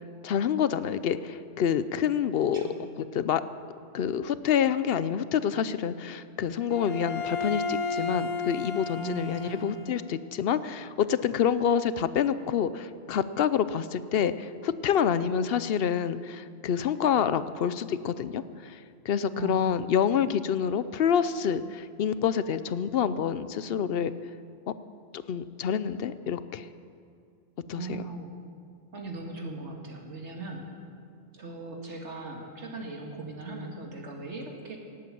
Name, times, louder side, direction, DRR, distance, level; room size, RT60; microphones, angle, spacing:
voice 1, 0.2-2.6 3.0-3.4 3.9-18.8 19.1-24.1 25.1-26.7 27.7-28.1, left 8 dB, 60° left, 14 dB, 0.8 m, -27 dB
Bowed string instrument, 6.7-10.1, left 4 dB, 30° left, 0.8 m, -33 dB
voice 2, 8.9-9.8 19.3-19.9 27.7-28.3 28.9-30.7 31.3-34.8, right 3 dB, 80° right, 1 dB, 2.4 m, -39 dB
18.0 x 8.5 x 8.6 m, 2.4 s
omnidirectional pair, 1.2 m